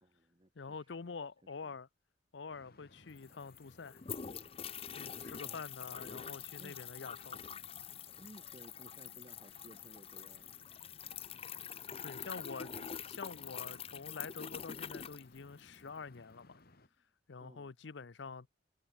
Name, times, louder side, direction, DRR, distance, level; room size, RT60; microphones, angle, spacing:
voice 1, 0.0-1.7 5.4-5.7 6.4-6.8 8.2-10.5 12.6-12.9 17.4-17.7, right 1 dB, 30° right, 2.1 m, -58 dB
voice 2, 0.6-1.9 2.3-4.0 5.0-7.4 12.0-12.7 13.2-16.6 17.3-18.5, left 5 dB, 70° left, 0.7 m, -46 dB
sound 1, 2.5-16.9, left 2 dB, 55° left, 2.4 m, -63 dB
sound 2, 2.8-2.9 3.1-15.9, left 8 dB, 30° left, 0.6 m, -46 dB
head